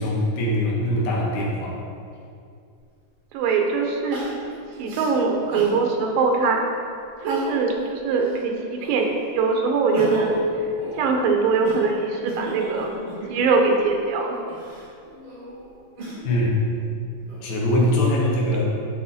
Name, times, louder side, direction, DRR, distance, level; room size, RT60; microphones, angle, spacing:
voice 1, 0.0-1.8 16.2-16.6 17.4-18.6, left 1 dB, 80° left, -4 dB, 3.1 m, -22 dB
Crying sobbing, 2.8-2.9 4.1-5.8 6.3-6.4 7.1-7.8 8.2-9.2 9.6-13.7 14.4-16.4 17.0-17.8, right 1 dB, 65° right, 3.8 m, -33 dB
voice 2, 3.3-4.2 4.8-6.6 7.2-10.4 11.0-12.9 13.3-14.4, right 4 dB, 80° right, 2 dB, 2.4 m, -22 dB
12.5 x 4.2 x 4.2 m, 2.4 s
omnidirectional pair, 4.1 m